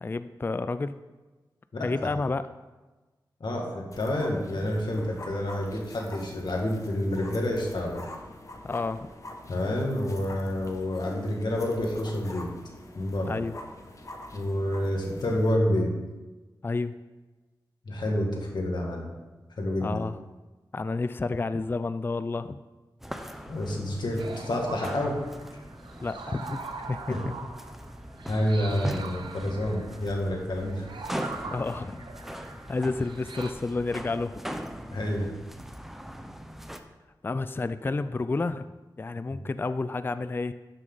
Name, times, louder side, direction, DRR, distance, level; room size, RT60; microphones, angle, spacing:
voice 1, 0.0-1.0 1.8-2.4 8.6-9.1 13.3-13.5 16.6-17.0 19.8-20.2 20.7-22.6 26.0-26.6 26.9-27.0 31.5-32.0 32.7-34.3 37.2-38.7 39.0-40.5, left 3 dB, 25° left, 12 dB, 0.3 m, -30 dB
voice 2, 1.7-2.1 3.4-8.0 9.5-12.5 13.0-13.4 14.3-15.9 17.8-19.1 19.6-20.0 23.5-25.2 27.1-27.2 28.3-30.9 34.9-35.3 39.3-39.4, left 1 dB, 70° left, -1 dB, 2.0 m, -28 dB
sound 1, 3.9-15.6, left 1 dB, 40° left, 1.2 m, -45 dB
sound 2, 23.0-36.8, equal, 5° right, 0.7 m, -40 dB
sound 3, 24.2-33.5, right 4 dB, 85° right, 0.8 m, -43 dB
12.0 x 6.3 x 4.0 m, 1.2 s
wide cardioid pair, 90°, 8 cm